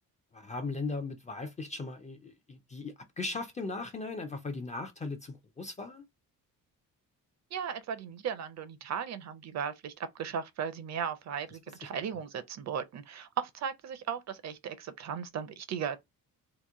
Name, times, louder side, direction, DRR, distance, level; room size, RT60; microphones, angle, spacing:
voice 1, 0.3-6.1 11.8-11.9, left 3 dB, 20° left, 0.3 m, -38 dB
voice 2, 7.5-16.0, right 7 dB, 50° right, 0.5 m, -36 dB
2.9 x 2.5 x 3.5 m
cardioid pair, 180°, 36 cm